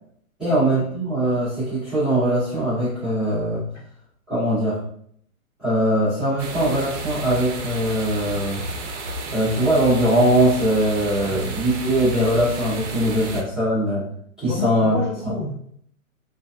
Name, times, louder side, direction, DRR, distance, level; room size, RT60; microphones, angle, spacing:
voice 1, 0.4-3.6 4.3-4.8 5.6-8.6 9.3-14.1 14.4-14.9 15.2-15.4, right 1 dB, ahead, -18 dB, 0.5 m, -21 dB
sound 1, 6.4-13.4, right 2 dB, 55° right, 0.5 m, -32 dB
voice 2, 14.4-15.8, left 2 dB, 55° left, -4 dB, 1.0 m, -31 dB
2.6 x 2.1 x 2.3 m, 0.66 s
hypercardioid pair, 150°, 42 cm